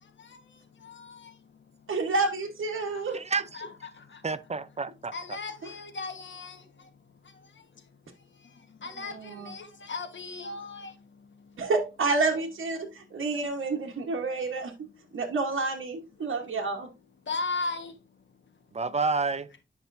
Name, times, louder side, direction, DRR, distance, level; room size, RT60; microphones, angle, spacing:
voice 1, 0.0-1.9 2.7-4.3 5.1-6.9 7.2-11.7 13.3-13.4 14.2-14.3 16.2-16.6 17.2-18.4, left 3 dB, 65° left, 1.4 m, -39 dB
voice 2, 1.9-3.2 9.0-9.5 11.6-12.8 13.1-14.7 15.1-16.9, right 3 dB, 85° right, 1.2 m, -29 dB
voice 3, 3.1-3.6 4.2-5.1 18.7-19.5, right 4 dB, 30° right, 0.5 m, -29 dB
9.9 x 5.8 x 2.6 m
wide cardioid pair, 130°, 21 cm